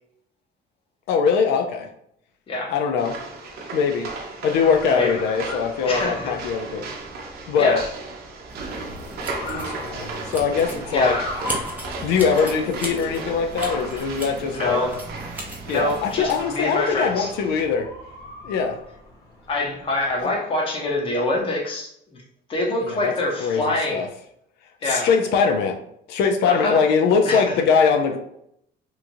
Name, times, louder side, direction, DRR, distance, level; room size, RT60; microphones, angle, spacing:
voice 1, 1.1-1.9 2.7-3.2 3.7-4.1 4.4-6.9 7.5-7.8 9.4-11.2 12.0-14.8 15.7-17.9 18.4-18.8 20.2-20.3 22.9-23.1 23.4-24.1 24.8-25.8 26.1-28.2, left 6 dB, 85° left, 3 dB, 0.4 m, -22 dB
sound 1, 3.0-17.6, right 3 dB, 70° right, 0.6 m, -36 dB
Motor vehicle (road) / Siren, 4.6-20.2, left 2 dB, 65° left, 0.9 m, -40 dB
voice 2, 5.8-6.4 7.6-7.9 10.9-11.2 14.5-14.9 15.7-17.3 19.5-21.9 22.5-24.0 24.8-25.1 26.4-26.8 27.2-27.4, left 2 dB, 30° left, -1 dB, 0.7 m, -25 dB
sound 2, 8.5-16.4, right 1 dB, 10° right, 0.6 m, -36 dB
3.0 x 2.4 x 2.6 m, 0.74 s
cardioid pair, 160°, 17 cm